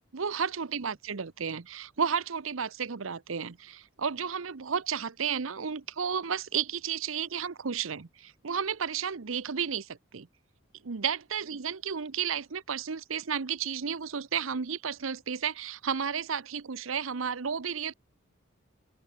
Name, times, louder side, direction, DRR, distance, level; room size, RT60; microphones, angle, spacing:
voice 1, 0.1-10.3 10.8-17.9, right 7 dB, 90° right, 0.8 m, -32 dB
open air
head